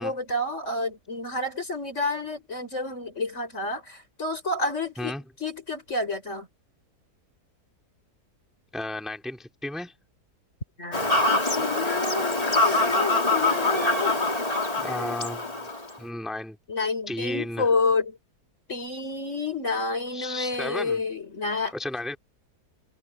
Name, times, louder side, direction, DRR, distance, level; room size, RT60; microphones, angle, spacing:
voice 1, 0.0-6.5 10.8-14.2 15.0-15.1 16.7-18.2 18.7-21.7, left 3 dB, 45° left, 5.4 m, -29 dB
voice 2, 8.7-9.9 14.8-15.7 16.0-16.6 17.1-17.7 20.1-21.0 21.7-22.2, left 1 dB, ahead, 2.5 m, -33 dB
Fowl / Bird vocalization bird call bird song, 10.9-15.9, left 2 dB, 20° left, 2.7 m, -24 dB
omnidirectional pair, 1.7 m